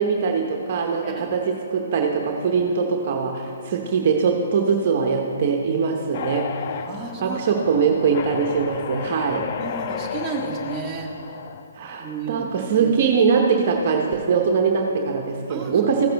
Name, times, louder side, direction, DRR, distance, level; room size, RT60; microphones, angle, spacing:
voice 1, 0.0-6.5 7.2-9.5 11.7-16.1, right 5 dB, 45° right, 2 dB, 0.9 m, -22 dB
voice 2, 1.0-1.3 6.9-7.6 9.6-11.3 12.0-12.5 12.8-12.9 15.5-15.9, right 5 dB, 10° right, -4 dB, 1.6 m, -32 dB
sound 1, 6.1-11.7, left 8 dB, 45° left, 0.4 m, -33 dB
15.0 x 7.8 x 3.5 m, 2.6 s
hypercardioid pair, 135°, 0 cm